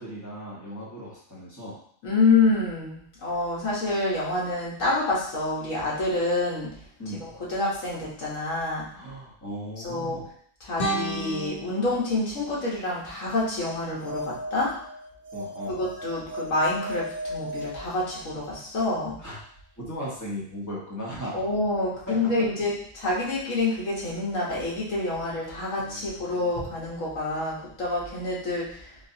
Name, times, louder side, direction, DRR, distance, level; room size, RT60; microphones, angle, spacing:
voice 1, 0.0-1.7 7.0-7.2 8.9-10.3 15.3-15.8 19.2-19.4 19.8-21.4 22.1-22.2 25.8-26.3, equal, 15° left, -7 dB, 1.0 m, -37 dB
voice 2, 2.0-6.8 7.1-8.9 9.8-10.2 10.6-14.7 15.7-19.2 21.3-29.0, left 2 dB, 75° left, -5 dB, 1.5 m, -27 dB
sound 1, 10.8-13.8, right 1 dB, 50° left, 0.8 m, -34 dB
sound 2, 13.8-18.6, equal, 50° right, 0.6 m, -37 dB
3.8 x 2.7 x 2.7 m, 0.62 s
omnidirectional pair, 1.4 m